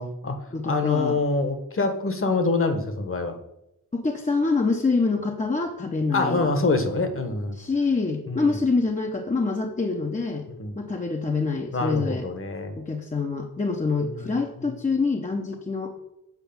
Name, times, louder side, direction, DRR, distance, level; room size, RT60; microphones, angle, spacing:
voice 1, 0.0-0.4 0.6-3.3 6.1-7.6 8.3-8.6 10.5-10.8 11.7-12.7 14.0-14.4, left 3 dB, 40° left, 7 dB, 1.3 m, -25 dB
voice 2, 0.5-1.2 3.9-6.5 7.5-10.5 10.8-12.3 12.8-15.9, left 4 dB, 25° left, 2 dB, 0.8 m, -26 dB
8.3 x 4.9 x 7.1 m, 0.84 s
wide cardioid pair, 120°, 33 cm